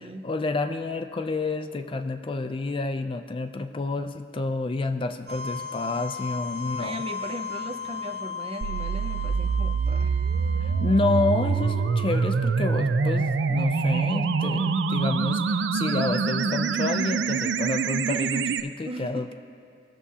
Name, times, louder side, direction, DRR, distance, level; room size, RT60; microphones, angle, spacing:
voice 1, 0.0-7.0 10.6-19.3, left 3 dB, 30° left, 7 dB, 0.4 m, -29 dB
sound 1, 5.3-13.0, left 5 dB, 60° right, 1.2 m, -37 dB
voice 2, 6.8-10.1 18.8-19.3, right 1 dB, 35° right, 7 dB, 0.5 m, -37 dB
sound 2, 8.6-18.6, right 5 dB, 85° right, 0.4 m, -25 dB
20.0 x 7.2 x 2.8 m, 2.4 s
head